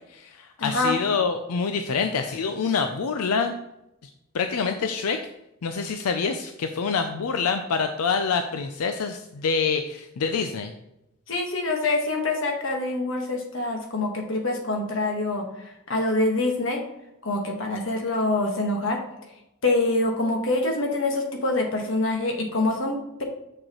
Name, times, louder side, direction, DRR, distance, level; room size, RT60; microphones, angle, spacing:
voice 1, 0.1-3.5 4.3-5.2 5.6-10.7, left 5 dB, 85° left, 7 dB, 0.5 m, -26 dB
voice 2, 0.6-0.9 11.3-16.8 17.2-19.0 19.6-23.2, left 2 dB, 60° left, 1 dB, 1.3 m, -25 dB
6.5 x 6.3 x 3.0 m, 0.87 s
head